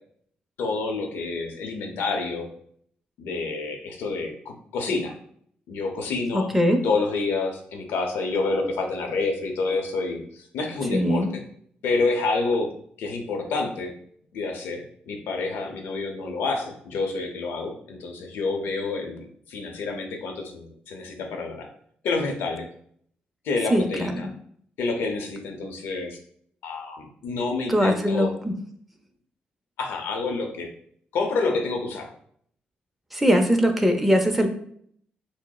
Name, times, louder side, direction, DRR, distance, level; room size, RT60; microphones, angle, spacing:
voice 1, 0.6-2.5 3.2-5.1 5.7-6.5 6.8-11.3 11.8-12.7 13.0-13.9 14.3-21.7 22.0-22.7 23.4-24.3 24.8-26.2 26.6-28.3 29.8-30.7 31.1-32.1, left 3 dB, 85° left, 3 dB, 0.7 m, -28 dB
voice 2, 6.3-6.8 10.9-11.3 23.7-24.2 27.7-28.5 33.1-34.5, equal, 5° right, 4 dB, 0.6 m, -21 dB
6.1 x 2.1 x 2.3 m, 0.63 s
cardioid pair, 90°, 4 cm